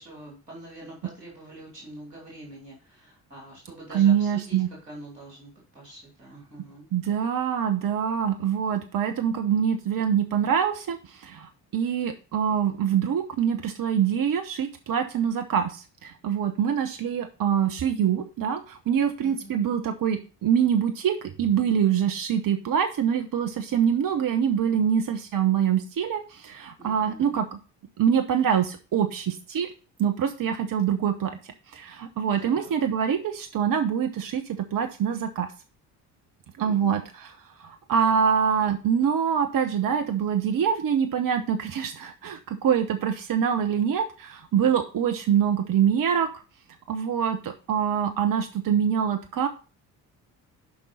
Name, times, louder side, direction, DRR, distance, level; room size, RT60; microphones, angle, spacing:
voice 1, 0.0-4.6 4.9-5.5 5.7-6.8 19.2-19.5 26.8-27.4 32.4-32.7 36.6-37.0, right 1 dB, 90° right, -4 dB, 3.0 m, -45 dB
voice 2, 3.9-4.7 6.9-27.6 28.0-29.7 30.0-31.3 31.7-35.5 36.6-46.4 46.9-49.5, right 8 dB, 45° right, 7 dB, 1.0 m, -25 dB
7.0 x 5.4 x 5.2 m, 0.34 s
figure-of-eight pair, 40°, 47 cm